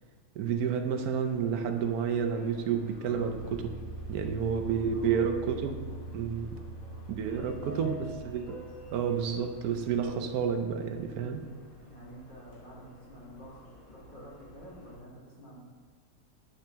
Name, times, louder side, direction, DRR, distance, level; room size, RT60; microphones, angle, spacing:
voice 1, 0.4-3.7 4.1-5.8 6.1-6.5 7.1-8.6 8.9-11.4, right 7 dB, 85° right, 6 dB, 1.2 m, -30 dB
Subway metro underground, 1.1-14.9, equal, 70° left, 1.9 m, -52 dB
sound 1, 3.0-12.1, right 2 dB, 70° right, 2.0 m, -45 dB
voice 2, 4.6-6.1 6.6-8.1 11.8-15.6, equal, 35° left, -6 dB, 1.6 m, -49 dB
8.8 x 5.8 x 3.5 m, 1.5 s
omnidirectional pair, 1.5 m